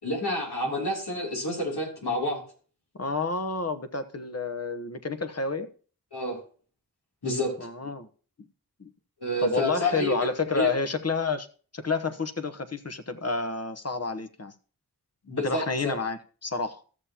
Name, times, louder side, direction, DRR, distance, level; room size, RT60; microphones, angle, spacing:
voice 1, 0.0-2.4 6.1-6.4 7.2-7.6 9.2-10.1 10.5-10.7 15.3-15.9, left 1 dB, 85° left, -2 dB, 3.2 m, -29 dB
voice 2, 2.9-5.7 7.6-8.1 8.8-8.9 9.4-11.5 11.7-14.5 15.4-16.8, left 4 dB, 40° left, 10 dB, 1.1 m, -29 dB
14.5 x 6.8 x 2.9 m, 0.39 s
cardioid pair, 40°, 38 cm